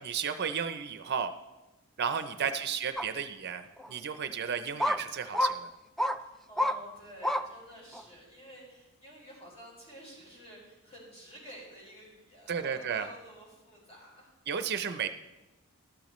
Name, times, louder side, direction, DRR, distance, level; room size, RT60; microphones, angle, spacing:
voice 1, 0.0-1.3 2.0-5.7 12.5-13.1 14.5-15.1, right 7 dB, 50° right, 9 dB, 0.5 m, -33 dB
sound 1, 3.0-3.1 3.8-3.9 4.8-5.0 5.3-5.5 6.0-6.2 6.6-6.8 7.2-7.4 7.9-8.0, left 1 dB, ahead, 0.3 m, -27 dB
voice 2, 6.2-14.3, equal, 30° left, -5 dB, 5.0 m, -51 dB
13.5 x 12.5 x 3.1 m, 1.1 s
head